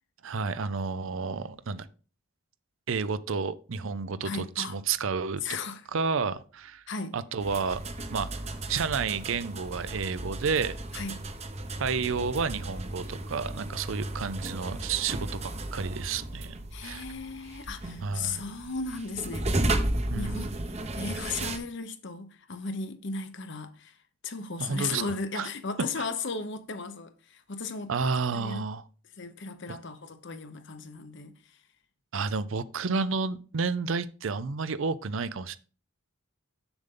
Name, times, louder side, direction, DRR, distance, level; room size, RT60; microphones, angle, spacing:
voice 1, 0.2-1.9 2.9-5.4 5.9-6.8 7.1-7.8 8.1-8.3 8.7-10.8 11.8-17.0 18.0-18.4 20.1-20.6 24.6-25.0 25.3-25.5 26.0-26.1 27.9-28.8 29.7-29.8 32.1-35.6, right 5 dB, 60° right, 0.5 m, -31 dB
voice 2, 4.2-4.8 5.4-5.8 6.9-7.2 10.9-11.2 16.7-19.9 20.1-20.5 20.9-24.0 24.2-27.9 28.3-28.6 29.2-31.6, left 4 dB, 55° left, 0.8 m, -36 dB
sound 1, 7.4-21.6, right 1 dB, 30° right, 0.8 m, -34 dB
7.0 x 6.8 x 3.7 m
head